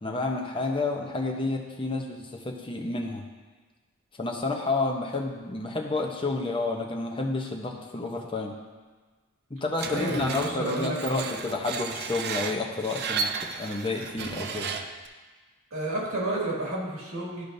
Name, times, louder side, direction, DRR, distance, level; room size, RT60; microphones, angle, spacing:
voice 1, 0.0-3.3 4.2-8.6 9.5-14.7, left 3 dB, 25° left, 1 dB, 0.7 m, -30 dB
Screech, 9.8-15.1, right 5 dB, 50° right, 0.4 m, -34 dB
voice 2, 9.9-11.2 15.7-17.4, right 1 dB, 75° right, -5 dB, 2.2 m, -31 dB
12.0 x 5.0 x 2.7 m, 1.4 s
head